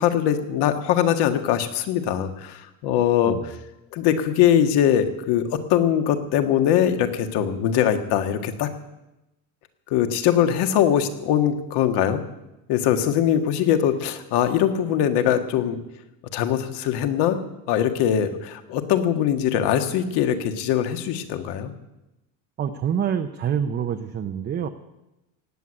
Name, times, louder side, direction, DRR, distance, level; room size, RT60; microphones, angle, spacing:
voice 1, 0.0-3.6 3.9-8.7 9.9-12.2 12.7-15.8 16.3-17.4 17.7-21.7, left 10 dB, 60° left, 7 dB, 1.8 m, -22 dB
voice 2, 22.6-24.7, right 8 dB, 25° right, 5 dB, 0.7 m, -26 dB
18.5 x 8.1 x 8.7 m, 0.95 s
cardioid pair, 155°, 45 cm